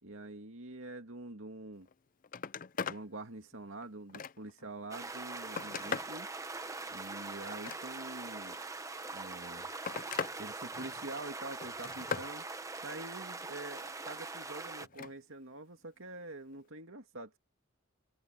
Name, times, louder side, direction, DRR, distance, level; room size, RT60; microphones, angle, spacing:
voice 1, 0.0-1.9 2.8-6.3 6.9-8.6 9.1-9.7 10.4-17.4, right 2 dB, 65° right, 2.3 m, -46 dB
Telephone, 1.8-1.9 2.2-3.0 3.5-4.6 5.2-6.2 7.4-8.2 9.2-10.4 10.7-11.2 11.6-12.3 14.8-15.1 16.5-16.7, left 6 dB, 40° left, 0.4 m, -40 dB
sound 1, 4.9-14.9, right 3 dB, 15° right, 1.0 m, -42 dB
open air
head